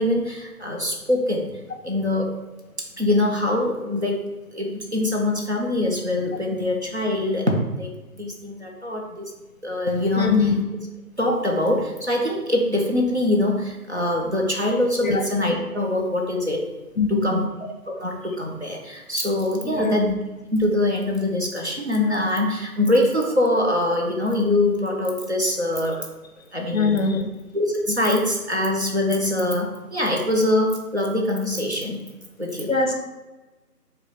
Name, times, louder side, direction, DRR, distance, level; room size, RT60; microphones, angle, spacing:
voice 1, 0.0-1.5 1.8-2.3 2.8-4.2 4.5-7.9 8.1-9.3 9.6-10.5 11.2-16.6 17.1-17.5 17.9-20.1 20.5-26.0 26.5-27.0 27.5-32.1 32.4-32.9, left 1 dB, 45° right, -1 dB, 0.6 m, -23 dB
voice 2, 10.2-10.6 15.0-15.2 17.0-17.5 19.6-20.0 26.7-27.3 32.7-32.9, left 4 dB, 60° left, 3 dB, 0.7 m, -22 dB
4.9 x 2.3 x 4.0 m, 1.1 s
figure-of-eight pair, 175°, 47 cm